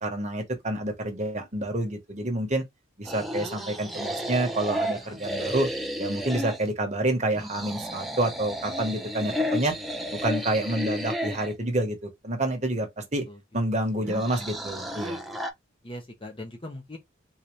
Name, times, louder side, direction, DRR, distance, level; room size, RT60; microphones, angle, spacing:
voice 1, 0.0-2.6 3.0-5.7 6.0-9.7 10.2-13.2 13.5-15.2, right 1 dB, 35° right, 1.1 m, -28 dB
sound 1, 3.0-6.7 7.3-11.5 14.0-15.5, equal, ahead, 0.4 m, -32 dB
voice 2, 4.9-5.2 13.3-13.4 13.7-14.2 15.8-17.0, left 1 dB, 25° left, 0.7 m, -41 dB
4.0 x 2.7 x 3.2 m
head